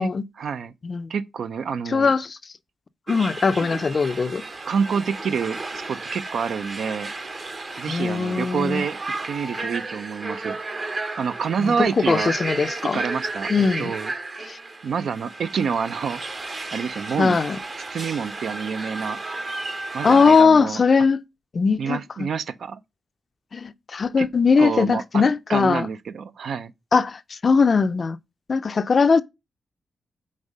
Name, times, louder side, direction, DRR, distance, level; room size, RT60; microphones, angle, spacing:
voice 1, 0.4-0.7 1.1-2.1 4.7-5.6 5.9-7.1 7.8-9.0 9.3-10.6 11.2-12.3 12.9-14.1 14.8-16.2 16.7-17.4 17.9-19.2 19.9-20.8 21.8-22.8 24.2-24.3 24.6-25.2 25.5-26.7, right 6 dB, 75° right, 0.4 m, -27 dB
voice 2, 1.9-2.4 3.1-4.4 7.9-8.8 11.6-13.0 13.5-13.9 14.5-14.6 17.2-17.6 20.0-21.2 21.5-22.0 23.5-25.9 26.9-28.2 28.5-29.2, left 5 dB, 45° left, 0.4 m, -20 dB
sound 1, 3.1-20.4, right 3 dB, 45° right, 0.9 m, -33 dB
5.3 x 3.6 x 5.2 m
cardioid pair, 85°, 0 cm